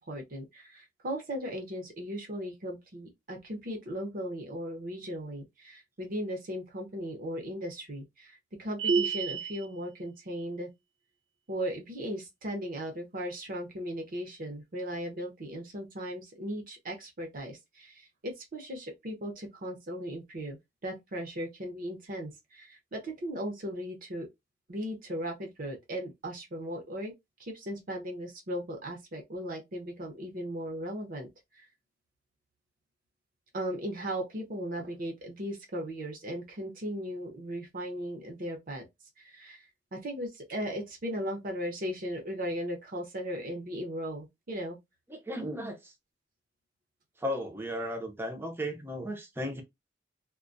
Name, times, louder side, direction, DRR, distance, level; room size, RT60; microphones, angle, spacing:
voice 1, 0.0-10.7 11.5-24.3 24.7-27.1 27.4-31.3 31.6-31.7 33.5-38.9 39.2-39.6 39.9-44.8, equal, 50° right, 0.8 m, -37 dB
sound 1, 8.8-9.7, right 5 dB, 80° right, 0.4 m, -28 dB
voice 2, 45.1-45.9 47.2-49.6, equal, 10° right, 0.6 m, -35 dB
2.2 x 2.2 x 2.5 m
head